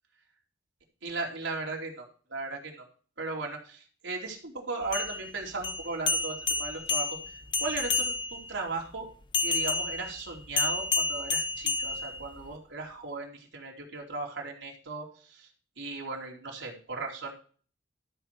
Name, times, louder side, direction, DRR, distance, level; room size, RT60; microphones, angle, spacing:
voice 1, 1.0-2.0 2.3-2.8 3.2-9.1 9.4-15.5 15.8-17.3, right 3 dB, 80° right, 0 dB, 2.8 m, -37 dB
sound 1, 4.8-8.5 9.3-12.5, left 3 dB, 25° left, 0.7 m, -30 dB
13.0 x 4.5 x 6.6 m, 0.41 s
head